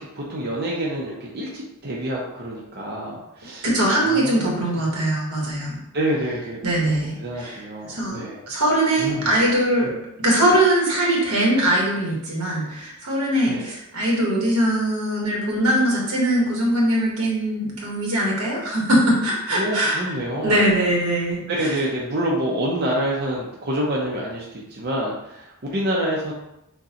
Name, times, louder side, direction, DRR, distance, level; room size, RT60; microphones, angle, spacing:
voice 1, 0.0-4.8 5.9-6.6 7.2-8.4 9.0-9.3 13.4-13.6 19.5-20.6 21.5-26.3, right 1 dB, 45° right, -4 dB, 0.6 m, -27 dB
voice 2, 3.6-5.8 6.6-8.2 8.5-9.9 10.2-20.1 20.4-21.7, right 1 dB, 85° right, -3 dB, 1.3 m, -21 dB
6.2 x 2.2 x 2.8 m, 0.85 s
head